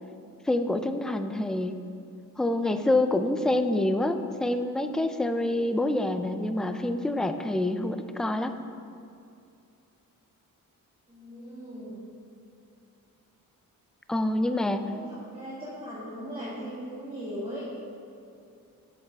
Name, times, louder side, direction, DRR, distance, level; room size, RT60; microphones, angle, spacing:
voice 1, 0.5-1.7 2.4-8.5 14.1-14.8, left 1 dB, ahead, 8 dB, 0.3 m, -26 dB
voice 2, 11.1-12.0 14.8-17.7, equal, 15° right, -9 dB, 1.9 m, -39 dB
8.2 x 7.2 x 3.4 m, 2.5 s
cardioid pair, 80°, 34 cm